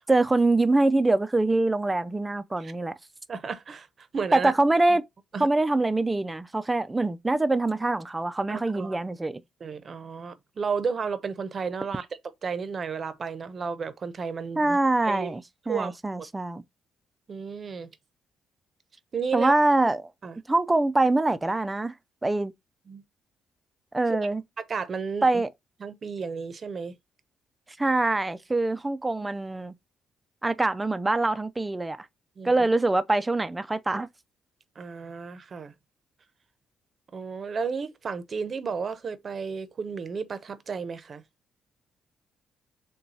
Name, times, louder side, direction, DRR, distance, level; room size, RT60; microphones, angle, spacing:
voice 1, 0.1-2.9 4.3-5.0 5.4-9.4 14.6-15.4 15.7-16.6 19.3-20.1 20.5-21.9 22.2-22.5 23.9-24.4 25.2-25.5 27.8-29.7 30.4-32.1 32.4-34.1, right 2 dB, 15° right, 0.4 m, -24 dB
voice 2, 3.3-4.5 4.9-5.0 5.3-5.5 8.5-9.0 9.6-12.1 12.4-14.8 15.0-15.4 15.7-15.9 17.3-17.9 19.1-19.5 20.2-20.4 22.9-23.0 24.6-25.4 25.8-26.9 32.4-32.7 34.8-35.7 37.1-41.2, right 5 dB, 45° right, 0.7 m, -33 dB
6.8 x 2.3 x 2.7 m
cardioid pair, 90°, 0 cm